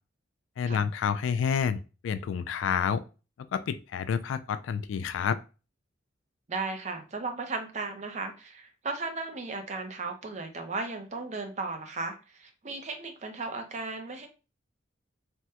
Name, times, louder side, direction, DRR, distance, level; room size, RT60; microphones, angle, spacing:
voice 1, 0.6-3.0 3.5-5.4, left 7 dB, 85° left, 12 dB, 0.3 m, -29 dB
voice 2, 6.5-14.3, right 3 dB, 40° right, 5 dB, 0.6 m, -36 dB
3.4 x 2.1 x 2.8 m, 0.32 s
head